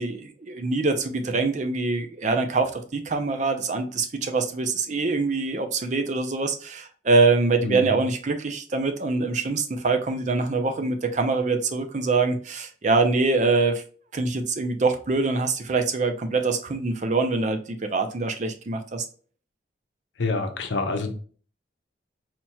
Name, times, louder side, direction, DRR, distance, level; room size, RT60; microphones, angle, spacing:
voice 1, 0.0-13.8 14.1-19.0, right 3 dB, 40° right, 7 dB, 0.5 m, -24 dB
voice 2, 20.2-21.1, left 3 dB, 90° left, 6 dB, 0.7 m, -27 dB
4.3 x 2.8 x 2.3 m, 0.42 s
head